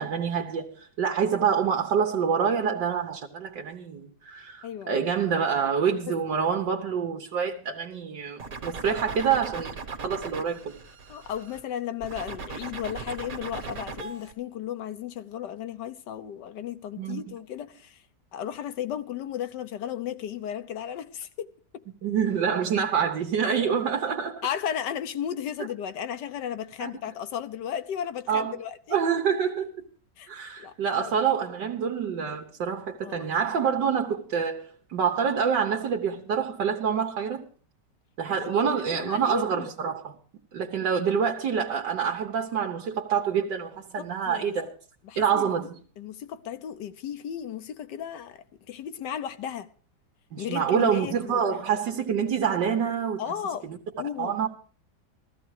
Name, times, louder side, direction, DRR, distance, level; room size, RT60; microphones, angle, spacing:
voice 1, 0.0-9.7 10.0-10.7 17.0-17.2 22.0-24.5 26.8-26.9 28.3-28.5 28.9-29.7 30.3-37.4 38.2-40.2 40.5-44.7 45.2-45.8 50.3-53.2 53.6-53.8 54.2-54.5, right 7 dB, 65° right, 1.8 m, -26 dB
voice 2, 4.6-5.0 6.1-6.2 11.1-18.0 18.3-21.5 23.4-23.6 24.4-29.0 30.2-30.3 30.6-31.1 33.0-33.6 38.3-39.7 44.0-44.6 45.0-45.5 46.0-49.7 50.4-51.6 53.2-53.6 54.0-54.5, left 9 dB, 65° left, 1.4 m, -35 dB
sound 1, 8.4-11.6 12.0-14.3, right 4 dB, 50° right, 1.9 m, -38 dB
14.5 x 14.5 x 4.8 m
omnidirectional pair, 2.1 m